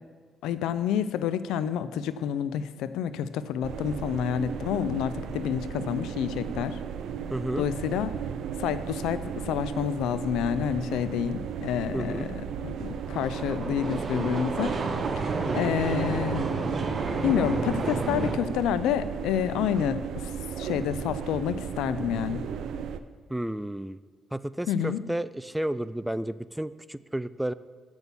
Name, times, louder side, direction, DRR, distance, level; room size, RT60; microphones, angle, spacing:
voice 1, 0.4-6.8 7.6-8.1 8.6-12.3 12.6-14.7 15.2-16.5 17.2-20.3 20.6-22.4 24.7-25.0, left 9 dB, 90° left, 14 dB, 0.4 m, -28 dB
sound 1, 3.6-23.0, right 7 dB, 75° right, 0.4 m, -35 dB
voice 2, 7.3-7.7 11.9-12.3 15.5-15.8 23.3-24.0 24.3-27.5, right 1 dB, 5° right, 16 dB, 0.3 m, -32 dB
sound 2, 12.9-18.4, right 3 dB, 45° right, 0.9 m, -30 dB
6.9 x 6.1 x 7.0 m, 1.5 s
cardioid pair, 90°, 0 cm